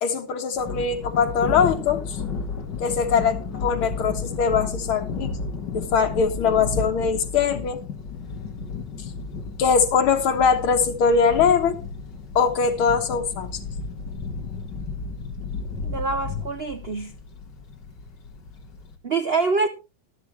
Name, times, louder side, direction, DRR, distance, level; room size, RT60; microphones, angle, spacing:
voice 1, 0.0-2.2 2.8-5.3 5.7-7.8 9.6-11.8 12.4-13.6, left 6 dB, 90° left, 2.2 m, -22 dB
Thunder, 0.5-19.0, left 4 dB, 60° left, 2.4 m, -33 dB
voice 2, 15.8-17.1 19.0-19.7, right 4 dB, 75° right, 0.5 m, -25 dB
12.5 x 12.5 x 3.2 m
omnidirectional pair, 2.2 m